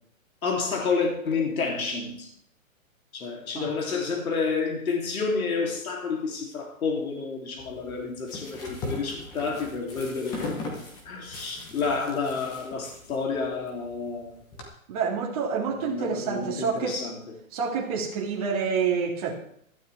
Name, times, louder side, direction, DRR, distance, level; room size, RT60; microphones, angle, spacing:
voice 1, 0.4-2.3 3.1-10.5 11.0-14.4 15.7-17.2, left 4 dB, 75° left, 0 dB, 3.2 m, -29 dB
sound 1, 7.6-14.6, left 2 dB, 10° left, 1.0 m, -39 dB
voice 2, 14.9-17.0 17.5-19.3, right 6 dB, 25° right, -2 dB, 2.3 m, -28 dB
16.0 x 12.5 x 3.5 m, 0.68 s
hypercardioid pair, 170°, 42 cm